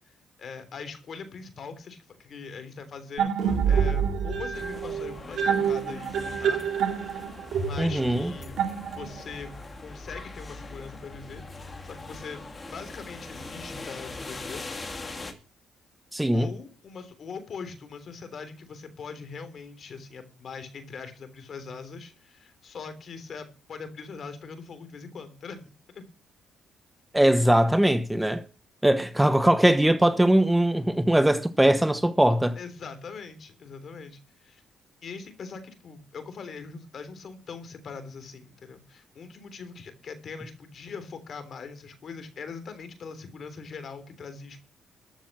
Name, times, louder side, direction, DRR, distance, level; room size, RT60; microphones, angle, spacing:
voice 1, 0.4-6.7 7.5-8.6 9.0-9.5 9.8-12.4 12.7-14.6 16.3-26.0 32.6-34.6 35.0-44.6, left 5 dB, 55° left, 3.4 m, -41 dB
sound 1, 3.2-9.4, right 7 dB, 75° right, 2.5 m, -27 dB
sound 2, 4.5-15.3, left 2 dB, 25° left, 2.8 m, -41 dB
voice 2, 7.8-8.3 16.1-16.5 27.1-28.4 28.8-32.6, right 1 dB, 10° right, 1.0 m, -21 dB
14.0 x 7.2 x 7.4 m
cardioid pair, 90°, 0 cm